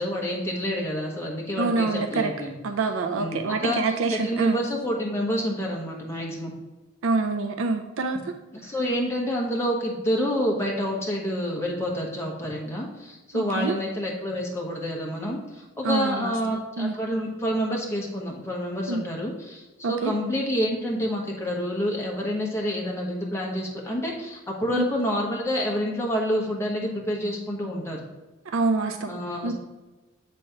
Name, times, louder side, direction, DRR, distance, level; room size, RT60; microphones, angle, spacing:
voice 1, 0.0-2.6 3.1-6.5 8.5-28.0 29.1-29.5, equal, 10° left, -2 dB, 1.2 m, -28 dB
voice 2, 1.6-2.3 2.6-4.6 7.0-8.2 13.3-13.8 15.8-16.3 16.8-16.9 18.9-19.0 19.8-20.1 24.7-24.9 28.5-29.2 29.4-29.5, right 3 dB, 65° right, 5 dB, 0.4 m, -26 dB
7.5 x 3.3 x 5.6 m, 1.1 s
head